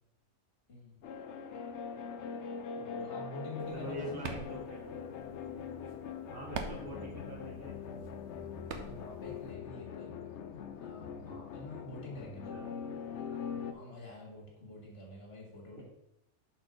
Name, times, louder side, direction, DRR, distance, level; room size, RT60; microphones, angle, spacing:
voice 1, 0.7-1.0 2.7-4.4 8.8-10.2 10.8-12.6 13.7-15.8, left 2 dB, 50° left, -2 dB, 2.0 m, -47 dB
sound 1, 1.0-13.7, left 6 dB, 70° left, 0.8 m, -42 dB
sound 2, 3.6-9.5, right 5 dB, 65° right, 1.0 m, -46 dB
voice 2, 3.7-4.8 6.3-7.8 12.5-12.8 15.8-15.9, right 1 dB, 45° right, -2 dB, 1.2 m, -43 dB
6.2 x 4.4 x 5.0 m, 0.84 s
omnidirectional pair, 1.3 m